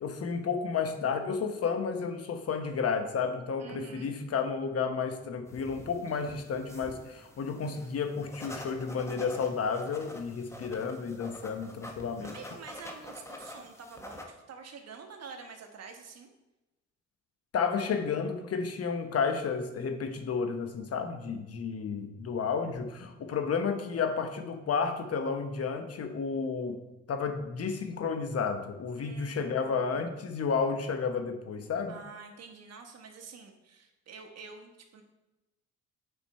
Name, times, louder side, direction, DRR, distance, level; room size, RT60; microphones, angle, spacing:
voice 1, 0.0-12.4 17.5-26.8 27.1-32.0, left 5 dB, 50° left, 7 dB, 1.0 m, -32 dB
voice 2, 3.6-4.1 12.2-16.3 29.0-30.2 31.9-35.0, right 5 dB, 55° right, 3 dB, 1.4 m, -48 dB
sound 1, 5.5-14.2, left 1 dB, 10° left, 1.0 m, -47 dB
7.7 x 5.1 x 4.2 m, 1.0 s
cardioid pair, 90°, 30 cm